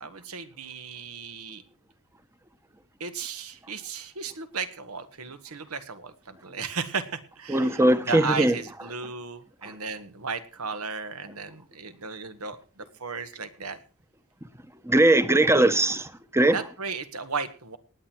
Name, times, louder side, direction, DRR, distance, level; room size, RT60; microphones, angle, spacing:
voice 1, 0.0-1.6 3.0-13.8 16.4-17.8, right 5 dB, 75° right, 1.6 m, -35 dB
voice 2, 7.5-8.5 14.9-16.6, right 1 dB, 10° right, 1.1 m, -20 dB
18.5 x 9.0 x 4.6 m
head